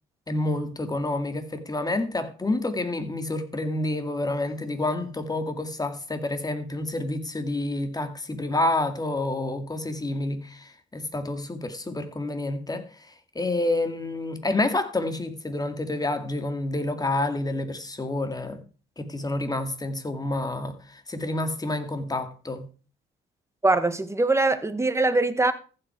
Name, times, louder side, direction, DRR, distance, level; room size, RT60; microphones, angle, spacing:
voice 1, 0.3-18.6 19.0-22.7, left 2 dB, 20° left, 2.2 m, -29 dB
voice 2, 23.6-25.5, right 2 dB, 15° right, 1.4 m, -22 dB
14.5 x 7.8 x 4.5 m
cardioid pair, 90°, 20 cm